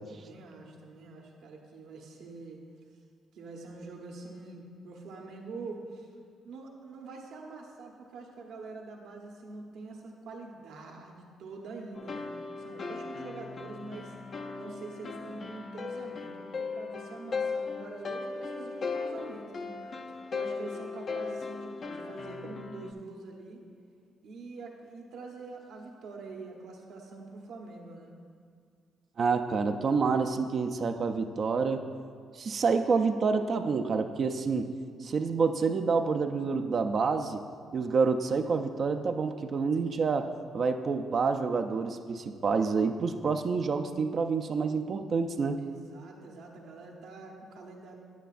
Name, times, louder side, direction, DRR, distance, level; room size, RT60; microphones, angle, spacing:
voice 1, 0.1-2.6 3.3-6.1 6.4-12.3 12.6-14.1 14.5-19.7 20.3-23.6 24.2-28.1 45.6-47.9, right 3 dB, 80° right, 0 dB, 1.1 m, -45 dB
sound 1, 11.9-22.9, left 4 dB, 50° left, 0.5 m, -37 dB
voice 2, 29.2-31.8 32.4-34.7 35.0-37.4 37.7-45.6, right 5 dB, 50° right, 6 dB, 0.4 m, -28 dB
9.2 x 9.0 x 2.5 m, 2.2 s
cardioid pair, 90°, 0 cm